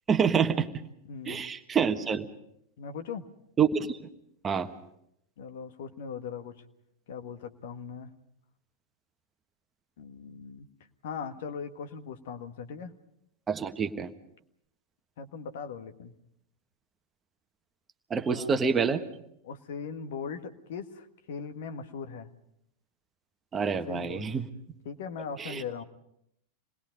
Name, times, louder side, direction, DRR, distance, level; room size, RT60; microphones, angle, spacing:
voice 1, 0.1-0.7 1.3-2.3 3.6-4.0 4.4-4.7 13.5-14.1 18.1-19.0 23.5-24.5 25.4-25.8, right 6 dB, 20° right, 7 dB, 1.4 m, -27 dB
voice 2, 1.1-1.5 2.8-3.3 5.4-6.6 7.1-8.1 10.0-10.7 11.0-12.9 15.2-16.1 18.3-18.5 19.4-22.3 23.7-24.3 24.8-25.8, left 6 dB, 55° left, 6 dB, 1.6 m, -39 dB
28.0 x 20.5 x 5.3 m, 0.76 s
figure-of-eight pair, 90°, 0 cm